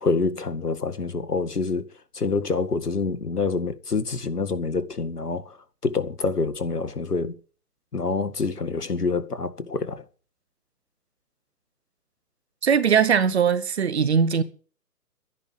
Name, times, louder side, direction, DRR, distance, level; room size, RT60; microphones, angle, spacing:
voice 1, 0.0-1.9 2.1-5.6 5.8-7.3 7.9-10.0, left 4 dB, 75° left, 2.1 m, -26 dB
voice 2, 12.6-14.4, right 7 dB, 45° right, 1.3 m, -20 dB
12.5 x 11.0 x 7.7 m
figure-of-eight pair, 145°, 47 cm